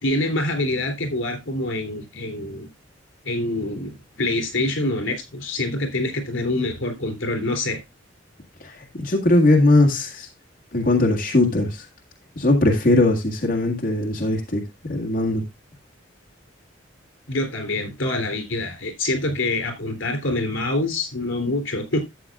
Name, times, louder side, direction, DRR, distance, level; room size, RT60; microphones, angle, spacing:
voice 1, 0.0-2.7 3.2-7.8 17.3-22.0, left 2 dB, 85° left, 3.4 m, -25 dB
voice 2, 8.6-10.3 10.7-11.9 12.4-15.4, left 2 dB, 50° left, 2.0 m, -20 dB
13.5 x 7.9 x 2.4 m
head